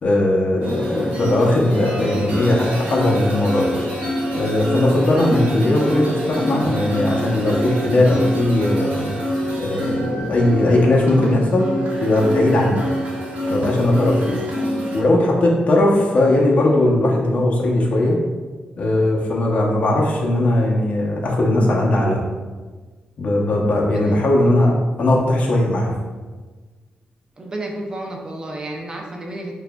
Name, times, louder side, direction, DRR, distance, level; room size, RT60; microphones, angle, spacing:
voice 1, 0.0-3.7 4.3-9.2 9.6-11.7 12.0-12.8 13.5-14.4 14.9-18.2 18.8-22.2 23.2-26.0, left 1 dB, 50° left, -2 dB, 0.8 m, -18 dB
sound 1, 0.6-15.0, equal, 90° right, 0.8 m, -25 dB
voice 2, 23.8-24.4 27.4-29.6, right 1 dB, 25° right, 0 dB, 0.6 m, -31 dB
6.9 x 2.5 x 2.3 m, 1.4 s
wide cardioid pair, 125°, 3 cm